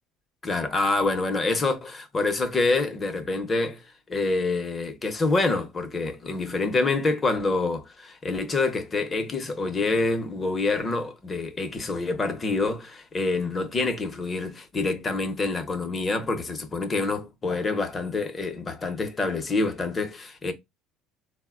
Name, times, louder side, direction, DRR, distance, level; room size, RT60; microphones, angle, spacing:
voice 1, 0.4-20.5, left 3 dB, 25° left, 0.7 m, -26 dB
4.0 x 2.1 x 2.3 m
cardioid pair, 115°, 0 cm